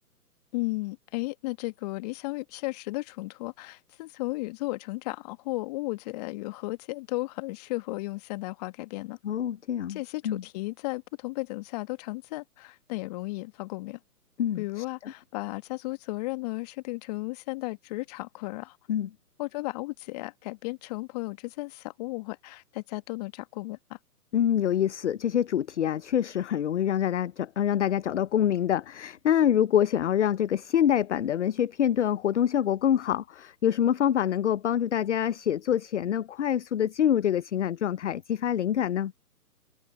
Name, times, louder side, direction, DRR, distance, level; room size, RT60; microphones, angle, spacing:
voice 1, 0.5-9.2 9.9-14.0 14.6-18.8 19.4-24.0, left 22 dB, 25° left, 1.6 m, -34 dB
voice 2, 9.2-10.0 10.2-10.4 14.4-14.8 18.9-19.1 24.3-39.1, left 10 dB, 50° left, 0.7 m, -26 dB
figure-of-eight pair, 135°, 47 cm